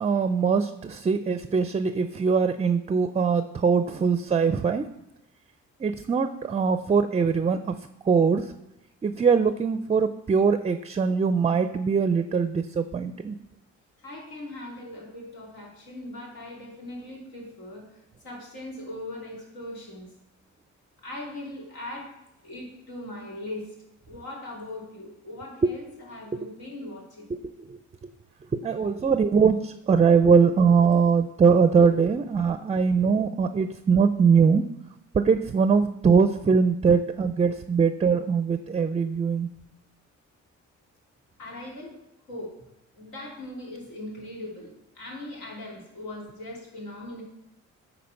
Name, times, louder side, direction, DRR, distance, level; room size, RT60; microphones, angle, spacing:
voice 1, 0.0-4.9 5.8-8.5 9.0-13.3 25.6-25.7 26.3-26.4 27.3-27.8 28.5-34.7 35.1-39.5, right 5 dB, 20° right, 10 dB, 0.4 m, -22 dB
voice 2, 14.0-17.8 18.2-20.1 21.0-22.1 22.4-23.7 24.1-27.3 41.4-41.9 42.3-42.5 42.9-47.2, left 1 dB, 90° left, -3 dB, 2.9 m, -39 dB
9.5 x 4.2 x 5.7 m, 0.89 s
cardioid pair, 90°, 30 cm